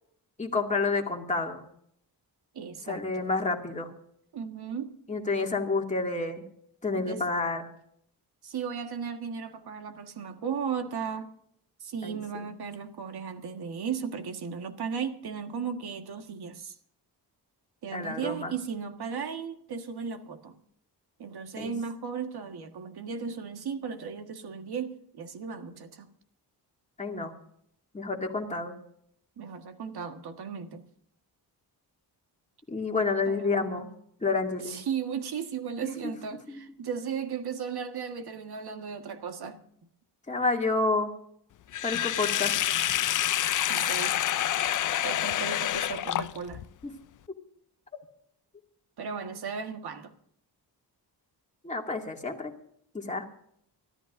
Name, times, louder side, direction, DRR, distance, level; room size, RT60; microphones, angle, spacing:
voice 1, 0.4-1.6 2.9-3.9 5.1-6.4 6.8-7.7 12.0-12.5 17.9-18.5 21.6-21.7 27.0-27.3 27.9-28.7 32.7-33.8 34.2-34.8 35.8-36.1 36.5-36.6 40.3-41.1 41.8-42.5 51.6-52.5 52.9-53.2, left 3 dB, 15° left, 2.3 m, -29 dB
voice 2, 2.5-3.3 4.3-4.9 7.0-7.2 8.4-11.3 11.8-16.7 17.8-20.6 21.2-26.1 29.4-30.8 33.3-33.9 34.7-39.6 43.6-44.2 45.0-46.6 49.0-50.1, right 6 dB, 65° right, 1.6 m, -36 dB
Sink (filling or washing), 41.7-46.6, left 11 dB, 50° left, 0.5 m, -27 dB
25.0 x 13.5 x 2.6 m
wide cardioid pair, 140°, 41 cm